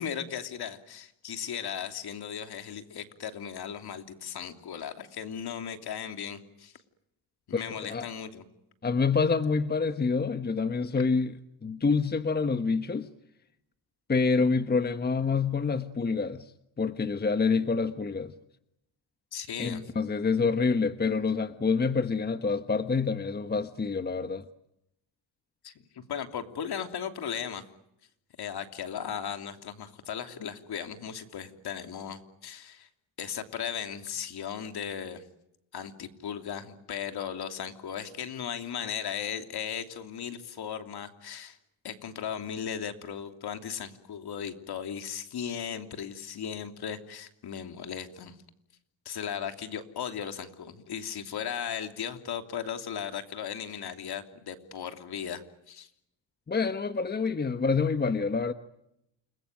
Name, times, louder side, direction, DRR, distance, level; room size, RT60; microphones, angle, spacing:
voice 1, 0.0-6.8 7.5-8.5 19.3-19.8 25.6-27.6 28.4-32.9 33.2-35.2 35.7-41.6 41.8-48.4 49.0-55.9, left 8 dB, 55° left, 3.1 m, -37 dB
voice 2, 7.5-8.0 8.8-11.3 11.6-13.1 14.1-16.4 16.8-18.3 19.6-24.4 56.5-58.5, left 4 dB, 20° left, 1.2 m, -27 dB
29.5 x 21.5 x 9.3 m
cardioid pair, 105°, 44 cm